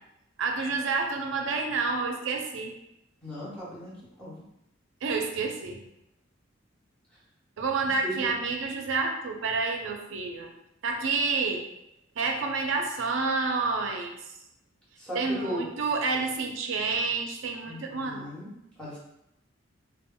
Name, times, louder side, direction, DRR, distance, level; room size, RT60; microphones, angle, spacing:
voice 1, 0.4-2.8 5.0-5.8 7.6-10.5 10.8-11.6 12.2-14.2 15.1-18.3, right 4 dB, 75° right, 3 dB, 0.4 m, -29 dB
voice 2, 3.2-4.4 7.8-8.3 15.0-15.7 17.7-18.5 18.8-19.0, equal, 5° left, -9 dB, 1.0 m, -37 dB
2.2 x 2.1 x 3.6 m, 0.84 s
head